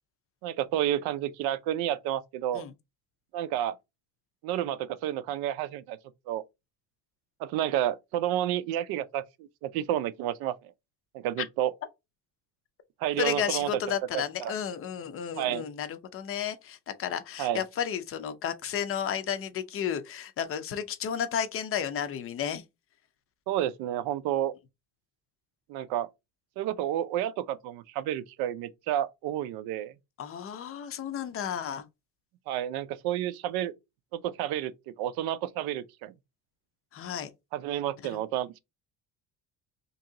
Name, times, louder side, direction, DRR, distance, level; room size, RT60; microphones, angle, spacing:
voice 1, 0.4-2.7 3.3-3.8 4.4-6.0 6.3-6.4 7.4-9.2 9.6-10.5 11.1-11.7 13.0-13.7 14.1-14.5 15.4-15.6 17.4-17.6 23.5-24.5 25.7-26.1 26.6-29.9 32.5-33.7 34.1-34.7 35.0-36.1 37.5-38.6, right 12 dB, 75° right, 0.5 m, -30 dB
voice 2, 13.2-22.6 30.2-31.8 36.9-37.3 38.0-38.2, left 8 dB, 35° left, 0.5 m, -32 dB
2.9 x 2.7 x 3.7 m
cardioid pair, 145°, 37 cm